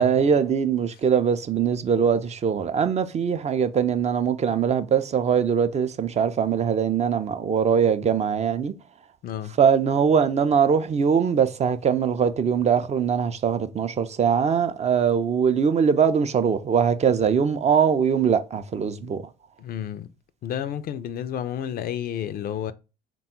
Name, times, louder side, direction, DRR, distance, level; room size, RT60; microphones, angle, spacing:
voice 1, 0.0-8.7 9.6-19.2, right 7 dB, 30° right, 0.4 m, -22 dB
voice 2, 9.2-9.6 19.6-20.1 20.4-22.7, left 10 dB, 45° left, 0.4 m, -31 dB
3.5 x 2.2 x 4.2 m
hypercardioid pair, 60°, 21 cm